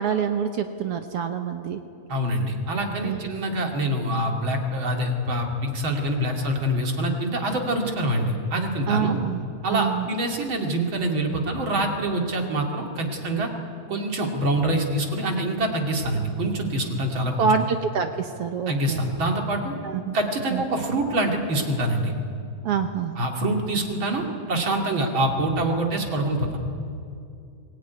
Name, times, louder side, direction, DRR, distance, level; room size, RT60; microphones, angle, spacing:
voice 1, 0.0-1.8 3.0-3.4 8.9-9.4 9.7-10.1 17.4-19.0 19.8-20.2 20.5-20.6 22.6-23.2, right 7 dB, 65° right, 6 dB, 1.7 m, -26 dB
voice 2, 2.1-9.2 9.6-13.5 13.9-17.5 18.7-19.8 20.1-22.1 23.2-26.6, right 1 dB, 45° right, 2 dB, 3.0 m, -25 dB
23.5 x 17.5 x 9.5 m, 2.5 s
omnidirectional pair, 3.3 m